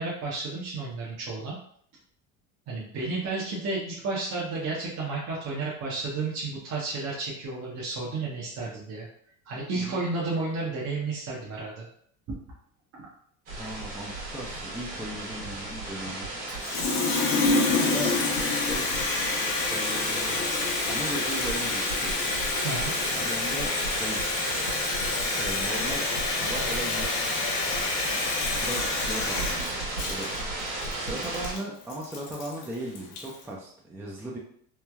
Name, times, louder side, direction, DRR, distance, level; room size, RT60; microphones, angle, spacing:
voice 1, 0.0-1.5 2.7-9.1 9.5-11.8 12.9-13.0 17.8-18.1 22.6-22.9, right 3 dB, 40° right, -5 dB, 0.8 m, -32 dB
voice 2, 13.5-16.3 17.6-18.1 18.5-18.9 19.6-20.4 20.9-22.1 23.1-24.3 25.4-26.0 26.3-27.2 28.6-29.8 30.1-30.3 30.9-34.4, right 1 dB, 5° right, -3 dB, 0.4 m, -37 dB
sound 1, 13.5-31.5, right 2 dB, 80° right, 1.4 m, -34 dB
Water tap faucet, 16.5-33.4, left 3 dB, 65° left, 0.8 m, -28 dB
3.2 x 2.1 x 2.3 m, 0.62 s
supercardioid pair, 90°, 39 cm